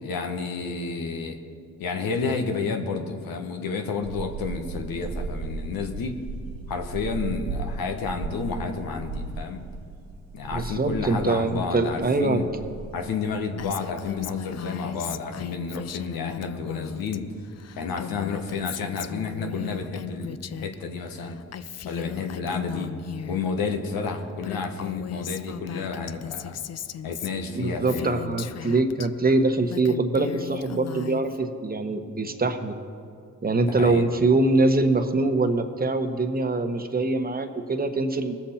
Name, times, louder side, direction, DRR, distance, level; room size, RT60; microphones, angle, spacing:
voice 1, 0.0-1.4 1.8-6.2 6.7-9.6 10.3-12.5 12.9-17.3 17.8-21.4 21.9-22.9 23.3-26.6 27.0-28.2 33.6-34.0, left 4 dB, 80° left, 5 dB, 1.2 m, -30 dB
sound 1, 4.0-18.8, right 4 dB, 75° right, 1.1 m, -37 dB
voice 2, 10.5-12.4 27.6-32.8 33.4-38.3, right 2 dB, 25° right, 6 dB, 1.2 m, -23 dB
Female speech woman speaking, 13.6-17.2 17.4-20.8 21.0-23.4 24.1-24.2 24.4-29.1 29.5-31.4, left 9 dB, 50° left, 0.5 m, -37 dB
19.5 x 7.2 x 4.3 m, 2.3 s
supercardioid pair, 50°, 34 cm